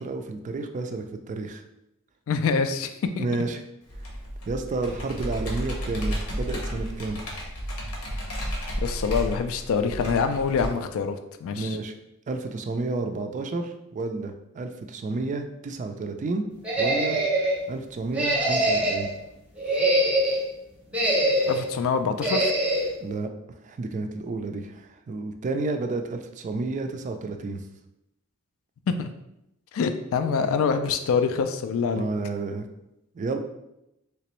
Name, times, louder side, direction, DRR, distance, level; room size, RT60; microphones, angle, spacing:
voice 1, 0.0-1.6 3.2-3.6 4.5-7.2 11.6-11.9 12.3-16.4 16.8-17.2 17.7-19.1 23.0-23.3 23.6-27.6 31.9-32.7 33.1-33.4, right 3 dB, 35° right, 6 dB, 0.3 m, -31 dB
voice 2, 2.3-2.9 3.2-3.3 8.8-11.8 21.5-22.5 29.0-29.1 29.7-32.1, left 5 dB, 65° left, 9 dB, 0.3 m, -25 dB
Computer keyboard, 3.9-10.7, equal, 85° left, 0.9 m, -32 dB
sound 1, 16.6-17.6 18.1-19.1 19.6-20.4 20.9-21.7 22.2-22.9, right 1 dB, 5° right, 0.7 m, -23 dB
3.3 x 2.9 x 3.0 m, 0.85 s
head